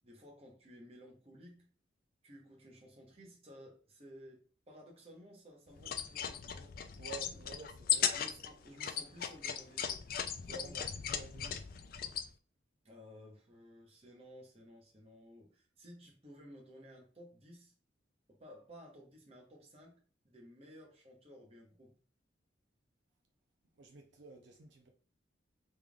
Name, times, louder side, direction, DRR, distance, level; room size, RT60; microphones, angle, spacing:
voice 1, 0.0-1.7 2.2-6.7 7.3-7.4 8.1-10.0 10.6-10.7 12.8-17.7 18.3-19.9 20.2-22.0, equal, 30° right, 1.0 m, -56 dB
sound 1, 5.8-12.3, left 9 dB, 50° left, 0.3 m, -37 dB
voice 2, 6.9-8.1 10.4-11.6 23.8-24.9, right 3 dB, 70° right, 0.6 m, -51 dB
3.6 x 3.3 x 2.3 m
head